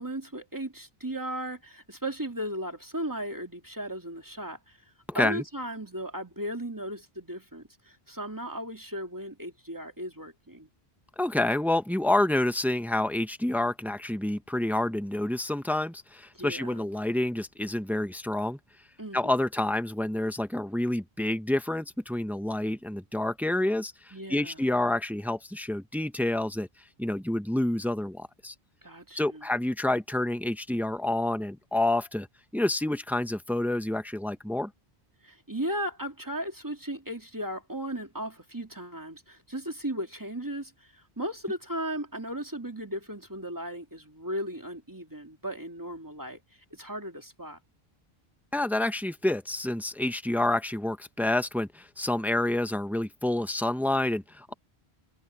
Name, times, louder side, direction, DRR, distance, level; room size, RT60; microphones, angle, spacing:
voice 1, 0.0-4.8 5.1-10.7 16.3-16.9 19.0-19.3 24.1-24.6 28.8-29.4 35.2-46.4 46.7-47.6, right 1 dB, 20° right, 2.3 m, -36 dB
voice 2, 5.1-5.4 11.2-18.6 19.1-26.7 27.0-28.5 29.2-32.3 32.5-34.7 48.5-54.5, left 1 dB, ahead, 0.9 m, -28 dB
omnidirectional pair, 1.0 m